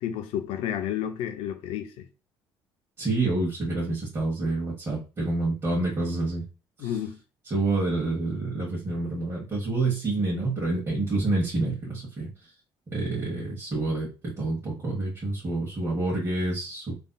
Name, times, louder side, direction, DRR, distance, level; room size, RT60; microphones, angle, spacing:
voice 1, 0.0-2.1 6.8-7.2, left 10 dB, 80° left, 0.5 m, -31 dB
voice 2, 3.0-6.4 6.8-6.9 7.5-12.3 12.9-17.0, right 2 dB, 30° right, 1.3 m, -28 dB
3.3 x 2.7 x 2.2 m
supercardioid pair, 85°, 9 cm